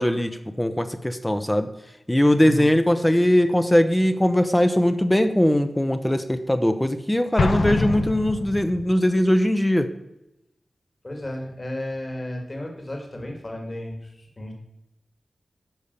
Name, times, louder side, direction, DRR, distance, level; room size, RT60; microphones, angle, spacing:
voice 1, 0.0-1.7 2.1-9.9, left 1 dB, 10° left, 9 dB, 0.6 m, -20 dB
Explosion, 7.4-9.0, left 3 dB, 75° left, 1.0 m, -25 dB
voice 2, 11.0-14.5, left 1 dB, 35° left, 2 dB, 2.1 m, -33 dB
10.5 x 5.6 x 6.7 m, 0.91 s
wide cardioid pair, 105°, 0 cm